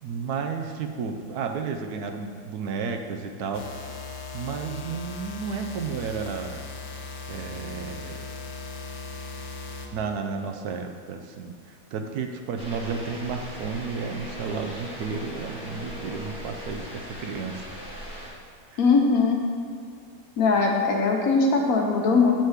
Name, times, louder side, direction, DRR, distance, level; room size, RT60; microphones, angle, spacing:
voice 1, 0.0-3.7 4.3-6.6 7.3-8.2 9.9-17.7 18.7-18.8, right 5 dB, 75° right, 5 dB, 1.1 m, -32 dB
sound 1, 3.5-9.9, left 4 dB, 90° left, 1.4 m, -38 dB
sound 2, 12.6-18.3, equal, 5° right, 1.5 m, -39 dB
voice 2, 18.8-19.4 20.4-22.3, left 4 dB, 65° left, 1 dB, 1.3 m, -20 dB
7.3 x 3.9 x 6.4 m, 2.2 s
omnidirectional pair, 1.7 m